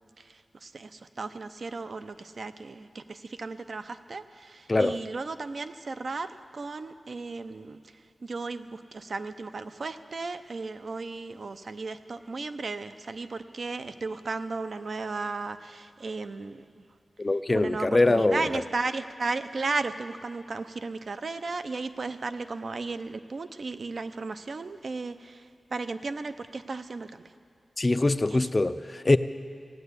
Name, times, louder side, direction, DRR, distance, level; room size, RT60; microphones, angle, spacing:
voice 1, 0.2-16.8 17.5-27.3 28.3-28.5, right 3 dB, 60° right, 10 dB, 0.6 m, -35 dB
voice 2, 17.2-18.5 27.8-29.2, left 2 dB, 30° left, 11 dB, 0.4 m, -23 dB
16.5 x 9.3 x 8.2 m, 2.3 s
wide cardioid pair, 95°, 0 cm